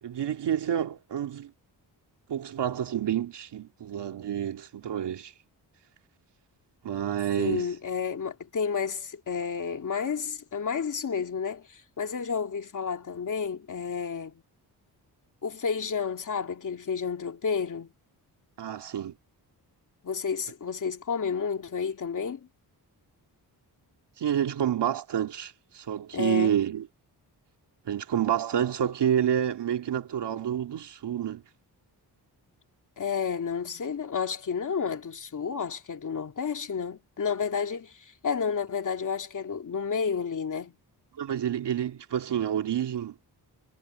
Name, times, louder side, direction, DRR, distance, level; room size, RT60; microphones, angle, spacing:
voice 1, 0.0-1.5 2.3-5.3 6.8-7.7 18.6-19.1 24.2-26.9 27.9-31.4 41.2-43.1, right 10 dB, 90° right, 2.3 m, -28 dB
voice 2, 7.4-14.4 15.4-17.9 20.0-22.5 26.1-26.6 33.0-40.7, left 6 dB, 50° left, 2.8 m, -31 dB
wide cardioid pair, 165°, 40 cm